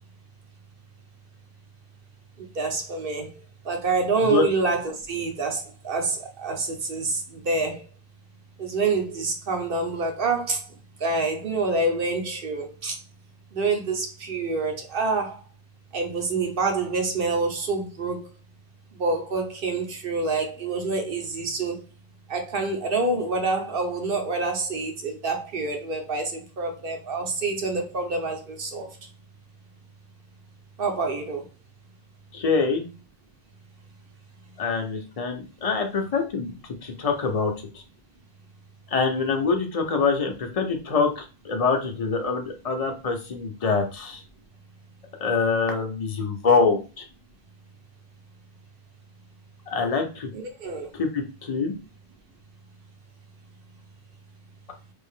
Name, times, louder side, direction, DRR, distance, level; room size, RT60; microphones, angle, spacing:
voice 1, 2.4-3.3 3.6-7.8 8.6-10.6 11.0-13.0 13.5-15.3 15.9-18.3 19.0-21.7 22.3-28.9 30.8-31.4 50.3-50.9, right 3 dB, 60° right, 1.0 m, -27 dB
voice 2, 32.3-32.9 34.6-36.5 36.8-37.5 38.9-44.2 45.2-47.0 49.7-50.3 50.9-51.7, left 4 dB, 40° left, 0.7 m, -25 dB
3.4 x 2.4 x 3.6 m
omnidirectional pair, 1.0 m